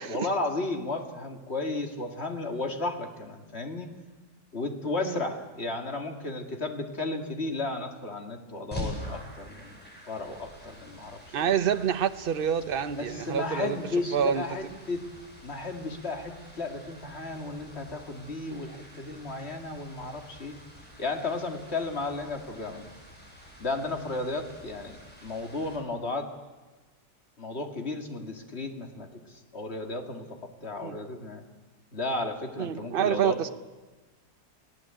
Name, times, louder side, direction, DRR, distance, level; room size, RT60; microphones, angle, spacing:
voice 1, 0.0-3.9 4.5-9.8 10.1-11.5 13.0-15.0 15.4-20.6 21.0-22.9 23.6-26.3 27.4-31.4 31.9-33.4, left 2 dB, 40° left, 2.5 m, -34 dB
sound 1, 8.7-25.8, left 1 dB, 5° left, 7.6 m, -46 dB
voice 2, 11.3-13.8 14.1-14.4 30.8-31.0 32.6-33.5, right 8 dB, 40° right, 0.9 m, -27 dB
29.0 x 18.0 x 9.0 m
omnidirectional pair, 1.8 m